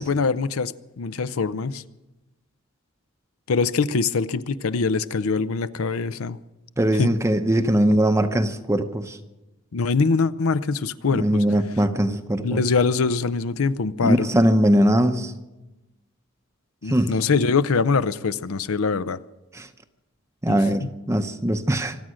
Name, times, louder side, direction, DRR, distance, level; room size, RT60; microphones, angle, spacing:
voice 1, 0.0-1.8 3.5-6.4 6.9-7.1 9.7-11.4 12.4-14.3 16.8-19.2 20.5-20.9, left 4 dB, 75° left, 0.6 m, -23 dB
voice 2, 6.8-9.2 11.2-12.6 14.0-15.3 16.9-17.1 19.5-19.7 20.4-21.9, right 1 dB, 15° right, 0.7 m, -21 dB
25.0 x 8.9 x 6.3 m
head